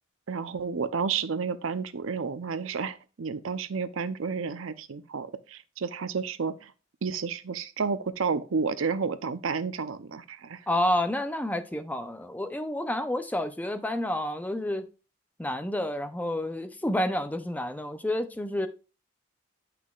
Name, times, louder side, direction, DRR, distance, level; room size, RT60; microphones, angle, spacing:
voice 1, 0.3-6.7 7.0-10.6, right 5 dB, 75° right, 0.6 m, -31 dB
voice 2, 10.7-14.8 15.4-18.7, left 1 dB, 10° left, 0.5 m, -29 dB
8.3 x 5.8 x 2.4 m
head